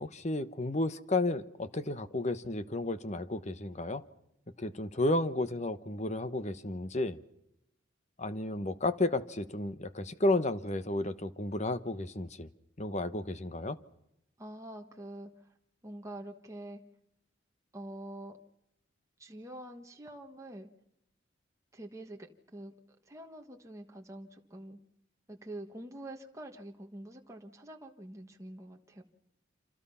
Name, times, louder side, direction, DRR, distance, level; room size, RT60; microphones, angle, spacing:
voice 1, 0.0-4.0 4.6-7.2 8.2-12.5 12.8-13.8, left 2 dB, 35° left, 12 dB, 1.1 m, -32 dB
voice 2, 14.4-15.5 15.8-16.8 17.7-18.4 19.2-20.7 21.7-22.7 23.0-24.8 25.3-29.0, right 1 dB, 15° right, 2 dB, 1.5 m, -46 dB
27.5 x 27.0 x 5.7 m, 0.81 s
head